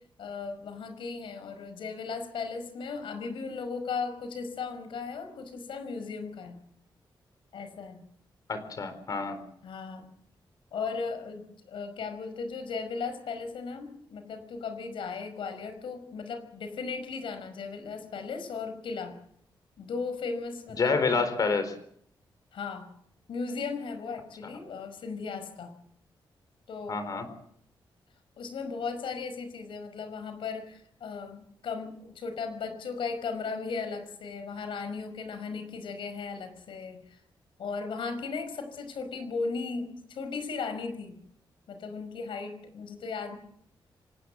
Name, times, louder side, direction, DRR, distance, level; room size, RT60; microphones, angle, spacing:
voice 1, 0.2-6.6 7.5-8.0 9.6-10.1 10.7-19.1 19.8-21.3 22.5-22.9 23.3-25.7 26.7-27.0 28.4-37.2 37.6-41.2 41.7-43.4, left 4 dB, 80° left, 9 dB, 5.4 m, -36 dB
voice 2, 8.5-9.4 20.8-21.7 26.9-27.3, left 4 dB, 45° left, 11 dB, 4.2 m, -28 dB
26.0 x 19.0 x 7.6 m, 0.69 s
wide cardioid pair, 175°, 9 cm